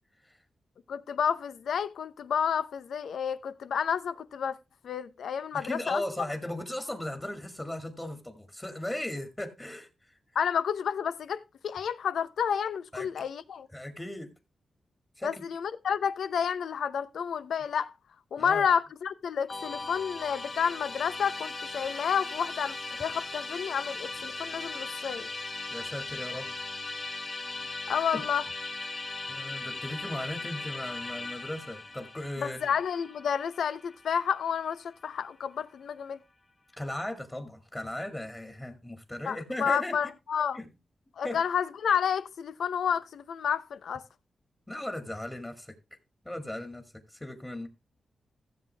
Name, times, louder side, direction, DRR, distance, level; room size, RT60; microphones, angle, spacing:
voice 1, 0.9-4.6 4.8-6.0 10.3-13.7 15.2-17.9 18.3-25.3 27.9-28.4 32.4-36.2 39.3-40.6 41.2-44.0, left 7 dB, 85° left, 0.7 m, -30 dB
voice 2, 5.5-10.1 12.9-13.2 13.7-14.3 15.2-15.4 18.4-18.7 25.7-26.5 27.8-28.2 29.3-32.7 36.8-39.9 40.5-40.7 41.2-41.4 44.7-45.7 46.2-46.8 47.1-47.7, left 1 dB, 15° left, 2.1 m, -37 dB
Musical instrument, 19.5-34.7, left 3 dB, 45° left, 2.4 m, -38 dB
15.0 x 7.2 x 3.4 m
cardioid pair, 70°, 0 cm